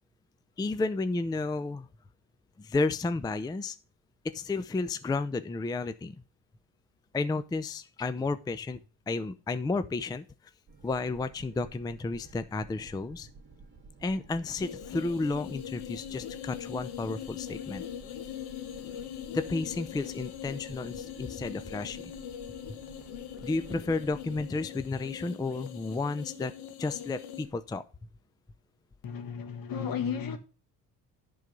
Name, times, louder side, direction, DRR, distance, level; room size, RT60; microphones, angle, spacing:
voice 1, 0.6-1.9 2.6-3.8 4.3-6.2 7.1-8.8 9.1-10.3 10.8-13.3 14.0-17.8 19.3-22.1 23.4-26.5 26.8-27.8, left 3 dB, 10° left, 0.4 m, -32 dB
sound 1, 10.7-24.4, right 4 dB, 30° right, 2.2 m, -53 dB
sound 2, 14.6-27.5, left 10 dB, 80° left, 1.2 m, -41 dB
voice 2, 29.0-30.4, left 7 dB, 60° left, 1.7 m, -33 dB
10.5 x 3.9 x 6.7 m
cardioid pair, 95°, 39 cm